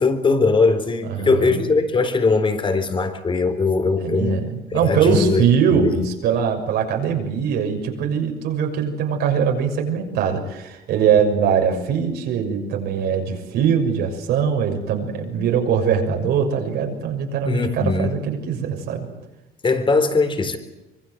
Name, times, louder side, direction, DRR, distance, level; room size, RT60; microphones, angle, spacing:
voice 1, 0.0-4.5 4.8-5.4 5.7-5.9 17.5-18.2 19.6-20.6, left 3 dB, 30° left, 9 dB, 4.0 m, -20 dB
voice 2, 1.0-1.6 4.0-19.1, right 7 dB, 80° right, 3 dB, 6.6 m, -22 dB
25.0 x 23.5 x 7.9 m, 1.0 s
cardioid pair, 110°, 17 cm